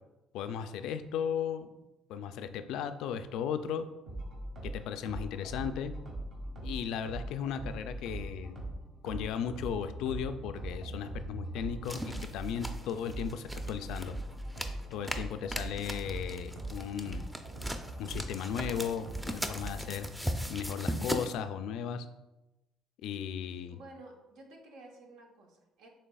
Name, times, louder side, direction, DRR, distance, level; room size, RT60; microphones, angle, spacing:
voice 1, 0.3-1.7 2.1-3.9 4.6-5.9 6.6-8.6 9.0-14.2 14.9-17.2 18.0-20.1 20.5-22.1 23.0-23.8, left 8 dB, 75° left, 10 dB, 0.3 m, -36 dB
sound 1, 4.1-20.1, right 1 dB, 60° right, 1.5 m, -41 dB
sound 2, 11.8-21.3, equal, 5° right, 0.5 m, -39 dB
voice 2, 23.7-25.9, right 2 dB, 85° right, 1 dB, 0.9 m, -52 dB
6.6 x 3.1 x 2.3 m, 0.98 s
supercardioid pair, 80°, 0 cm